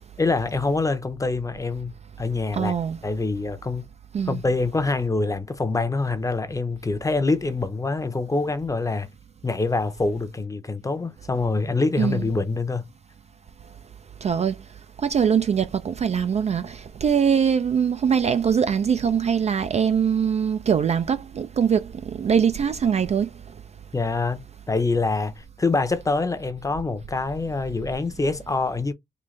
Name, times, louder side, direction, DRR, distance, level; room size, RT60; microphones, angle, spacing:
voice 1, 0.2-1.9 2.2-2.7 3.0-3.9 4.3-9.1 9.4-12.9 23.9-28.9, left 3 dB, 15° left, 0.7 m, -25 dB
voice 2, 2.5-3.0 4.1-4.4 12.0-12.3 14.2-14.6 15.0-23.3, right 7 dB, 35° right, 0.3 m, -22 dB
3.8 x 2.4 x 3.2 m
cardioid pair, 90°, 20 cm